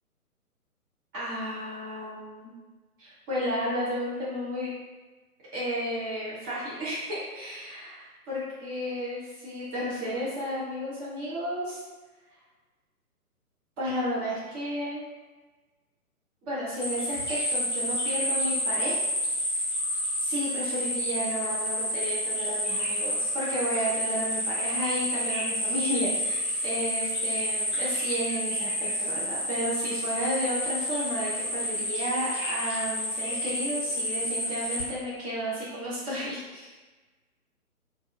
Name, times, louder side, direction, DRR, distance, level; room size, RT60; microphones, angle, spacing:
voice 1, 1.1-2.5 3.0-4.7 5.5-11.8 13.8-15.1 16.4-19.0 20.2-36.7, equal, 15° right, -10 dB, 0.8 m, -32 dB
sound 1, 16.8-34.8, equal, 10° left, 1.0 m, -30 dB
4.1 x 2.6 x 2.2 m, 1.2 s
figure-of-eight pair, 135°, 45 cm